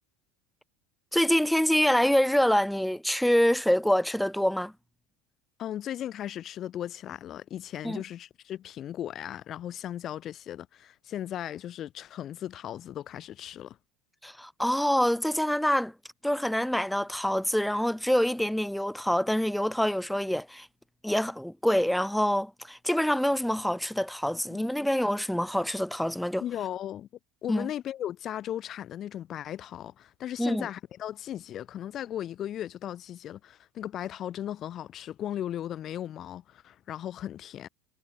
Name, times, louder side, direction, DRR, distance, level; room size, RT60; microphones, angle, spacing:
voice 1, 1.1-4.7 7.8-8.0 14.2-15.9 16.2-20.7 21.0-26.4 27.5-27.7 30.4-30.7, equal, ahead, 0.6 m, -26 dB
voice 2, 5.6-13.8 24.5-24.6 26.4-27.1 27.4-37.7, left 11 dB, 40° left, 1.4 m, -37 dB
supercardioid pair, 125°, 0 cm